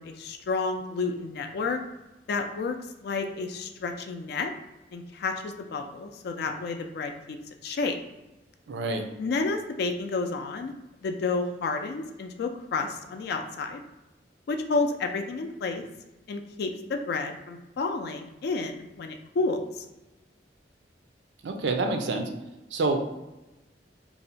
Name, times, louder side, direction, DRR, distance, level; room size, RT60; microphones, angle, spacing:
voice 1, 0.0-1.8 2.3-4.5 4.9-7.4 7.6-8.0 9.2-10.7 11.0-13.8 14.5-15.8 16.3-19.7, left 3 dB, 60° left, 5 dB, 0.3 m, -30 dB
voice 2, 8.7-9.0 21.4-22.3 22.7-23.0, right 3 dB, 80° right, 4 dB, 0.5 m, -27 dB
2.6 x 2.1 x 4.0 m, 1.0 s
head